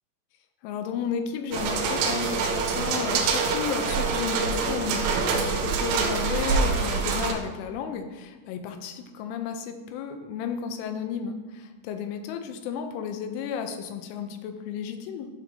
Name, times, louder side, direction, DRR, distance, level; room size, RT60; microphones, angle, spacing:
voice 1, 0.6-15.3, left 7 dB, 80° left, 6 dB, 3.0 m, -33 dB
sound 1, 1.5-7.3, right 5 dB, 85° right, 3.3 m, -25 dB
11.5 x 6.3 x 2.7 m, 1.2 s
omnidirectional pair, 5.8 m